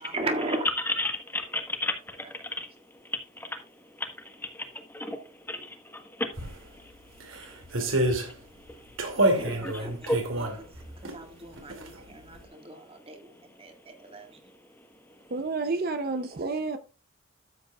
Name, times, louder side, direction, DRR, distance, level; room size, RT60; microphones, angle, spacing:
voice 1, 0.0-0.7 9.2-10.7 11.0-14.4, right 2 dB, 30° right, 1.9 m, -37 dB
voice 2, 0.9-2.7 3.4-3.6 4.2-4.7 4.9-5.2 5.5-6.3 9.4-10.2, left 1 dB, 10° left, 1.3 m, -33 dB
sound 1, 6.3-6.5 7.2-8.3 9.0-11.2 11.5-12.0 12.3-12.4, right 1 dB, 80° right, 2.6 m, -28 dB
voice 3, 15.3-16.8, right 3 dB, 50° right, 0.7 m, -30 dB
13.0 x 8.0 x 2.4 m
head